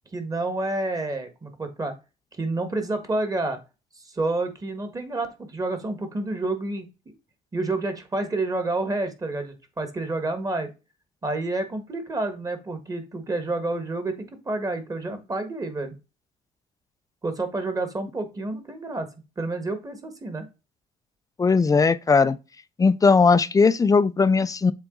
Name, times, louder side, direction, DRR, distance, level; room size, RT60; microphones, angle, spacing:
voice 1, 0.1-1.9 2.4-3.6 4.0-7.1 7.5-10.7 11.2-15.9 17.2-19.1 19.4-20.5, right 2 dB, 20° right, 1.7 m, -29 dB
voice 2, 21.4-22.4 22.8-24.7, left 4 dB, 20° left, 0.5 m, -18 dB
7.3 x 3.9 x 3.9 m
cardioid pair, 110°, 17 cm